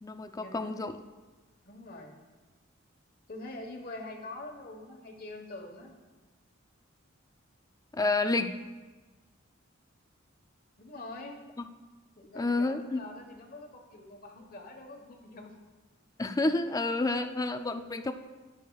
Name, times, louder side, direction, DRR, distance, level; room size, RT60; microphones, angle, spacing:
voice 1, 0.0-1.0 7.9-8.5 12.4-13.0 16.2-18.1, left 2 dB, 15° left, 8 dB, 0.4 m, -29 dB
voice 2, 1.6-2.1 3.3-6.0 10.8-11.4 12.2-15.6, left 2 dB, 45° left, 3 dB, 1.3 m, -44 dB
19.5 x 6.5 x 2.4 m, 1.3 s
head